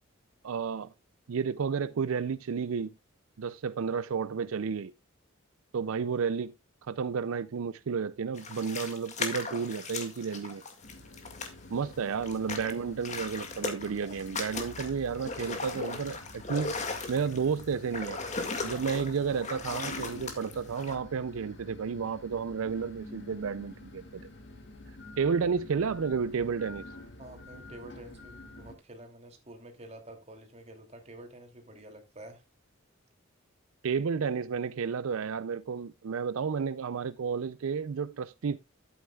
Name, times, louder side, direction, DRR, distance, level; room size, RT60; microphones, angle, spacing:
voice 1, 0.4-0.9 1.3-2.9 3.4-4.9 5.7-6.5 6.9-10.6 11.7-16.8 17.1-18.2 18.6-24.3 25.2-26.9 33.8-38.6, right 6 dB, 75° right, 0.4 m, -31 dB
sound 1, 8.3-12.0 12.2-20.9, left 3 dB, 35° left, 1.9 m, -37 dB
sound 2, 10.8-28.8, left 2 dB, 55° left, 2.2 m, -48 dB
voice 2, 27.2-32.4, right 1 dB, 30° right, 2.7 m, -49 dB
12.5 x 8.8 x 2.3 m
head